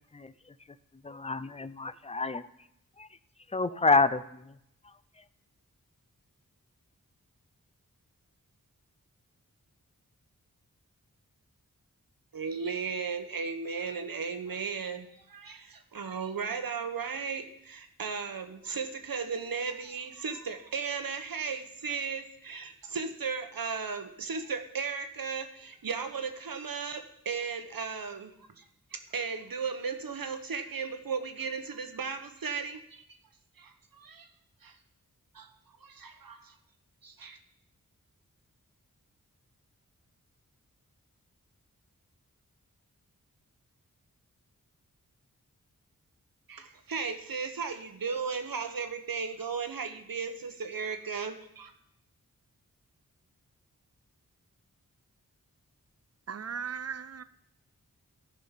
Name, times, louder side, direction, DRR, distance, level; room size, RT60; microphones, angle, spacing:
voice 1, 1.0-2.5 3.0-3.1 3.5-4.5, left 3 dB, 20° left, 15 dB, 0.5 m, -28 dB
voice 2, 12.3-28.6 28.9-33.0 33.6-34.3 34.6-34.8 35.3-35.5 35.8-36.5 37.0-37.4 46.5-51.7, right 5 dB, 80° right, 7 dB, 1.1 m, -36 dB
voice 3, 56.3-57.2, right 6 dB, 45° right, 15 dB, 0.5 m, -37 dB
14.0 x 5.4 x 5.7 m, 0.76 s
wide cardioid pair, 65°, 34 cm